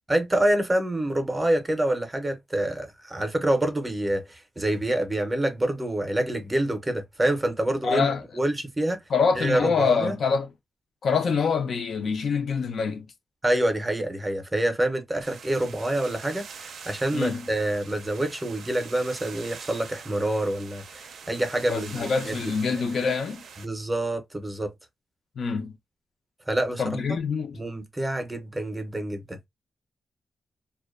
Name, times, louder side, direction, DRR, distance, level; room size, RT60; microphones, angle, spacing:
voice 1, 0.1-9.0 9.4-10.2 13.4-22.3 23.6-24.7 26.5-26.8 27.1-27.2 27.5-29.4, right 1 dB, 15° right, 0.5 m, -27 dB
voice 2, 7.8-8.2 9.1-10.5 11.0-13.0 17.1-17.4 21.7-23.4 25.4-25.7 26.8-27.6, left 5 dB, 55° left, 0.4 m, -25 dB
sound 1, 15.2-23.6, right 6 dB, 80° right, 0.4 m, -44 dB
2.5 x 2.1 x 2.3 m
wide cardioid pair, 175°, 0 cm